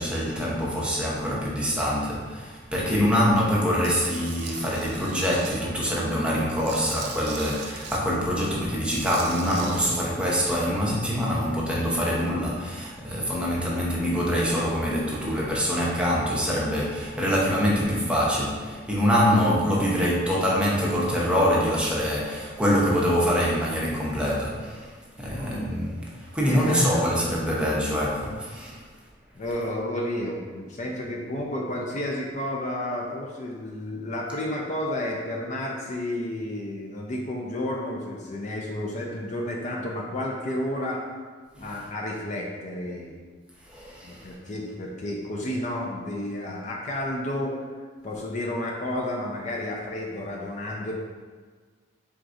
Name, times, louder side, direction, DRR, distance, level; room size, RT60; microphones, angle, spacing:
voice 1, 0.0-28.8 41.5-41.7 43.7-44.3, equal, 5° right, -5 dB, 0.8 m, -25 dB
voice 2, 2.9-3.2 25.3-25.6 26.5-27.1 29.3-41.0 41.6-43.1 44.0-47.7 48.0-50.9, left 1 dB, 40° left, -1 dB, 0.5 m, -31 dB
Tools, 3.8-5.5 6.0-8.0 8.8-9.9, right 5 dB, 60° right, 0.5 m, -39 dB
4.5 x 3.7 x 2.6 m, 1.5 s
head